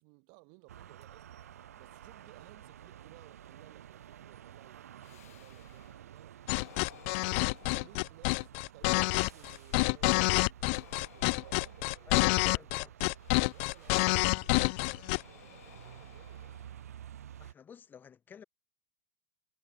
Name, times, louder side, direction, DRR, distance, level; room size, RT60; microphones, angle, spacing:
voice 1, 0.0-12.3 13.5-16.8, right 40 dB or more, 50° right, 3.7 m, -60 dB
sound 1, 0.7-17.5, right 10 dB, 75° right, 2.0 m, -52 dB
sound 2, 5.0-6.1 6.5-8.5 8.9-10.1 10.6-12.6 13.2-14.6 15.0-17.2, left 13 dB, 70° left, 2.7 m, -59 dB
sound 3, 6.5-15.2, left 31 dB, 50° left, 0.5 m, -28 dB
voice 2, 12.1-13.1 17.4-18.4, left 7 dB, 25° left, 2.1 m, -52 dB
hypercardioid pair, 105°, 8 cm